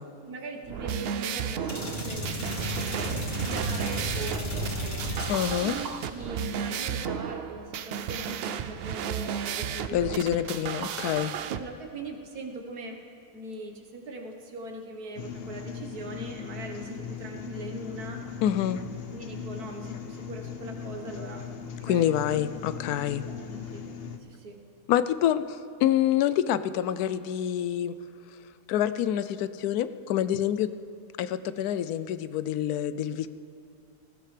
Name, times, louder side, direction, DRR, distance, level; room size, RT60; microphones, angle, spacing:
voice 1, 0.2-5.1 5.6-10.3 11.5-13.0 13.3-18.3 19.1-21.5 21.8-22.1 23.2-23.9 24.2-24.6, right 2 dB, 90° right, 3 dB, 1.8 m, -40 dB
sound 1, 0.6-11.6, right 8 dB, 75° right, 0.5 m, -33 dB
sound 2, 1.7-6.1, equal, 30° left, 2.6 m, -33 dB
voice 2, 5.3-5.7 9.9-11.3 18.4-18.8 21.8-23.2 24.9-27.9 28.7-30.7 31.2-33.3, left 10 dB, 85° left, 13 dB, 1.1 m, -27 dB
sound 3, 15.2-24.2, left 6 dB, 50° left, 0.8 m, -39 dB
19.0 x 15.5 x 3.3 m, 2.6 s
omnidirectional pair, 1.6 m